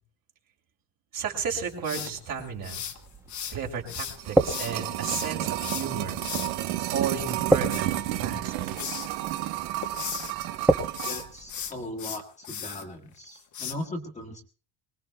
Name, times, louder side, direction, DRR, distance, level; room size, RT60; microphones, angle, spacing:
voice 1, 1.1-2.8 3.5-6.2 6.9-8.7, right 6 dB, 45° right, 1 dB, 3.0 m, -33 dB
sound 1, 1.8-3.6 3.9-6.5 7.5-8.5 8.8-9.1 9.5-10.3 10.8-12.8 13.5-13.7, left 9 dB, 40° left, 1.1 m, -36 dB
sound 2, 2.1-11.7, right 1 dB, 5° right, 0.7 m, -32 dB
sound 3, 3.9-11.3 11.6-11.7, right 14 dB, 80° right, 1.1 m, -31 dB
voice 2, 11.1-14.4, left 1 dB, 15° left, 1 dB, 1.5 m, -38 dB
24.5 x 19.5 x 2.2 m, 0.38 s
cardioid pair, 160°, 46 cm